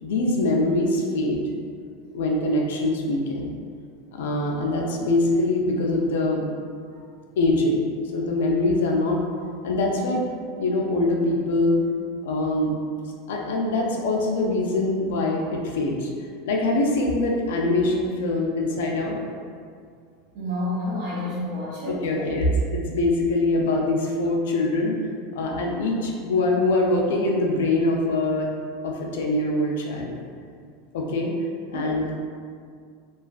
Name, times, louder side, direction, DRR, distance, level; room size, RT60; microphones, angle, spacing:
voice 1, 0.0-1.4 2.1-3.5 4.1-6.6 7.4-7.8 8.1-9.2 9.6-10.3 10.6-11.8 12.2-12.8 13.3-16.1 16.4-19.2 21.8-25.0 25.3-28.5 28.8-30.2 30.9-31.3 31.7-32.3, left 2 dB, 85° left, -1 dB, 0.3 m, -23 dB
voice 2, 20.3-22.1 31.7-31.9, left 1 dB, 60° right, -7 dB, 0.4 m, -30 dB
2.3 x 2.3 x 2.3 m, 2.2 s
supercardioid pair, 155°, 0 cm